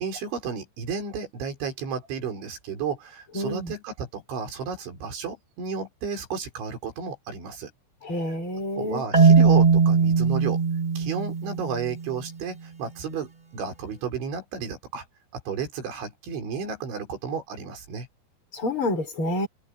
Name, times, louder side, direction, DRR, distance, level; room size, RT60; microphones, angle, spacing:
voice 1, 0.0-7.7 8.8-10.6 11.0-13.3 13.5-15.0 15.5-18.1, right 6 dB, 85° right, 7.2 m, -32 dB
voice 2, 3.3-3.7 8.0-9.0 18.5-19.5, left 1 dB, 30° left, 6.0 m, -28 dB
Marimba xylophone, 9.1-12.1, right 5 dB, 30° right, 0.8 m, -19 dB
omnidirectional pair, 5.2 m